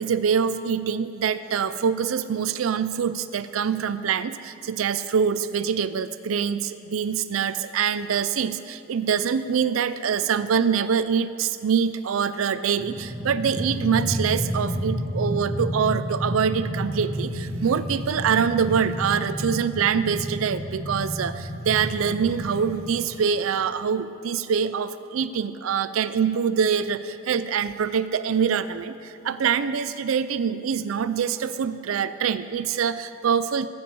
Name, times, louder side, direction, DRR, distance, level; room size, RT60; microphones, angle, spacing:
voice 1, 0.0-33.7, right 7 dB, 85° right, 13 dB, 0.4 m, -25 dB
sound 1, 12.7-22.9, equal, 30° right, 2.0 m, -30 dB
14.0 x 9.8 x 6.8 m, 2.6 s
head